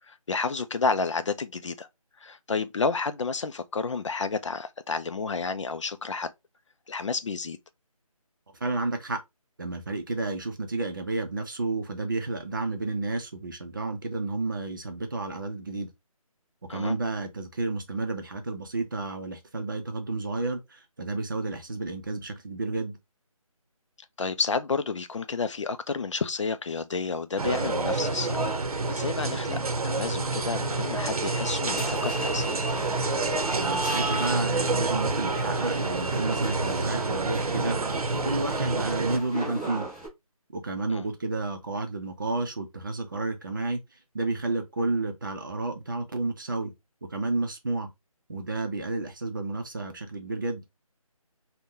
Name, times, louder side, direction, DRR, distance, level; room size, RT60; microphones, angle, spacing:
voice 1, 0.1-1.9 2.2-6.3 6.9-7.6 16.7-16.9 24.2-29.6 29.8-32.7 40.9-41.0, left 4 dB, 55° left, 0.4 m, -30 dB
voice 2, 8.6-9.2 9.6-15.9 16.6-23.0 33.5-39.9 40.5-43.8 44.1-46.7 47.1-47.9 48.3-50.6, right 3 dB, 35° right, 0.5 m, -31 dB
sound 1, 27.4-39.2, right 3 dB, 80° right, 0.7 m, -28 dB
sound 2, 31.6-40.1, right 2 dB, 10° left, 0.7 m, -38 dB
2.7 x 2.1 x 3.6 m
figure-of-eight pair, 170°, 19 cm